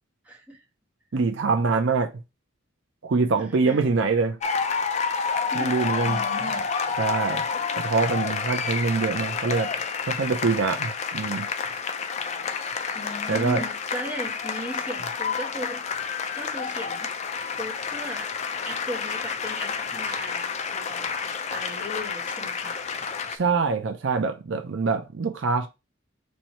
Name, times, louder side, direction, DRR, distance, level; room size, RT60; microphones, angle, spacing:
voice 1, 0.2-0.6 3.4-4.0 5.5-6.6 12.9-15.8 16.3-18.3 18.6-22.9, equal, 5° right, 1.3 m, -37 dB
voice 2, 1.1-2.1 3.0-4.4 5.5-6.2 7.0-7.4 7.8-9.7 10.1-11.5 13.3-13.6 23.3-25.7, right 4 dB, 65° right, 0.5 m, -24 dB
sound 1, 4.4-23.4, left 5 dB, 35° left, 0.4 m, -29 dB
4.4 x 2.7 x 4.3 m
head